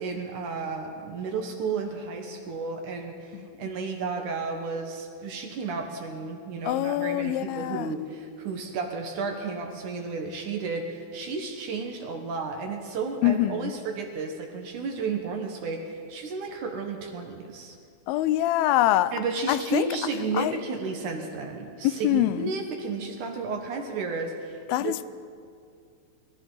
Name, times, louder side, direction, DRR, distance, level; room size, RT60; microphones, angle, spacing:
voice 1, 0.0-17.8 19.1-25.1, right 4 dB, 65° right, 2.5 m, -33 dB
voice 2, 6.7-7.9 13.2-13.7 18.1-19.1 19.5-19.9 20.4-20.5 21.8-22.5 24.7-25.1, left 14 dB, 85° left, 2.4 m, -24 dB
23.0 x 14.0 x 4.0 m
omnidirectional pair, 4.3 m